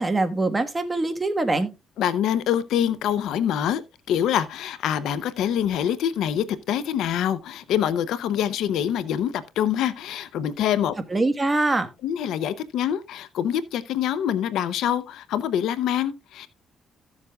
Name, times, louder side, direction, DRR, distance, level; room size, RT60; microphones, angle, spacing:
voice 1, 0.0-1.7 11.1-11.9, right 2 dB, 20° right, 1.4 m, -23 dB
voice 2, 2.0-3.8 4.1-11.0 12.0-16.5, left 10 dB, 85° left, 0.7 m, -25 dB
14.5 x 7.3 x 2.3 m
cardioid pair, 90°, 0 cm